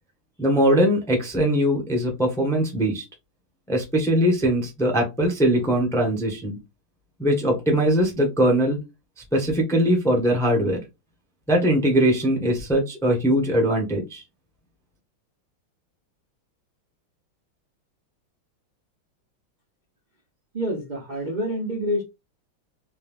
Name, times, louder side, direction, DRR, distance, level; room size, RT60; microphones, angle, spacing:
voice 1, 0.4-3.0 3.7-6.6 7.2-8.8 9.3-10.8 11.5-14.2, equal, 5° left, 0.4 m, -21 dB
voice 2, 20.5-22.0, equal, 70° right, 0.4 m, -27 dB
3.3 x 3.0 x 3.5 m
omnidirectional pair, 2.3 m